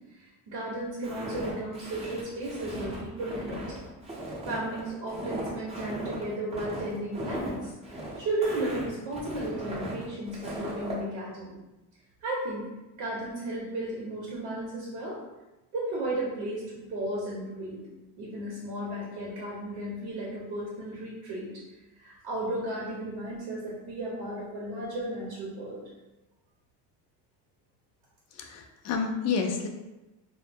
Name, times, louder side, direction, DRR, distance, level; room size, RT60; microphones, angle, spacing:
voice 1, 0.1-3.6 4.4-11.5 12.2-12.7 12.9-15.2 15.7-17.8 18.2-21.5 22.0-25.9, right 1 dB, 75° right, -5 dB, 0.8 m, -34 dB
Walk footsteps, 1.0-11.0, right 1 dB, 15° right, 0.6 m, -37 dB
voice 2, 28.4-29.7, left 5 dB, 40° left, 4 dB, 0.4 m, -29 dB
2.0 x 2.0 x 3.3 m, 1.0 s
cardioid pair, 115°, 41 cm